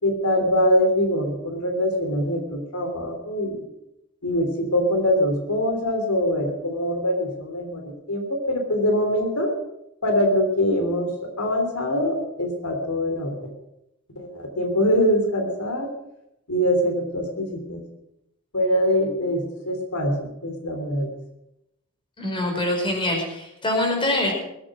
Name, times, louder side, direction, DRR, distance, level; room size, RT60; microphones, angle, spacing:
voice 1, 0.0-3.6 4.2-9.5 10.0-11.1 11.4-13.5 14.1-15.9 16.5-17.8 18.5-21.1, equal, 90° left, 3 dB, 3.3 m, -23 dB
voice 2, 22.2-24.3, left 1 dB, 25° left, 1 dB, 4.9 m, -24 dB
21.0 x 8.9 x 6.3 m, 0.84 s
head